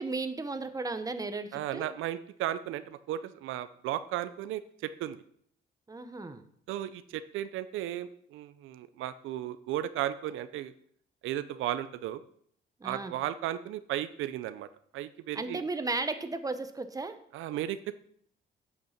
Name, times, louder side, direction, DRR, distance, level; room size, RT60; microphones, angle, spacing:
voice 1, 0.0-1.9 5.9-6.4 12.8-13.1 15.3-17.2, right 3 dB, 20° right, 9 dB, 1.0 m, -35 dB
voice 2, 1.5-5.2 6.7-10.7 11.2-12.2 12.8-14.7 14.9-15.7 17.3-17.9, right 12 dB, 85° right, 13 dB, 0.5 m, -35 dB
8.6 x 6.7 x 5.9 m, 0.64 s
cardioid pair, 90°, 20 cm